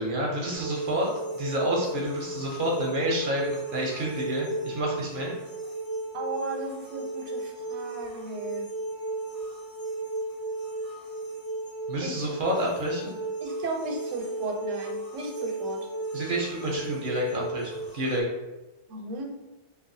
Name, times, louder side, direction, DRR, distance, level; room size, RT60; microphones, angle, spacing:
voice 1, 0.0-5.3 11.9-13.1 16.1-18.2, equal, 55° right, -2 dB, 0.7 m, -29 dB
sound 1, 0.5-18.2, right 2 dB, 30° left, 0.4 m, -35 dB
voice 2, 6.1-8.7 12.0-12.3 13.4-15.9 18.9-19.2, right 2 dB, 85° right, 2 dB, 1.0 m, -35 dB
3.2 x 2.2 x 2.6 m, 1.0 s
omnidirectional pair, 1.2 m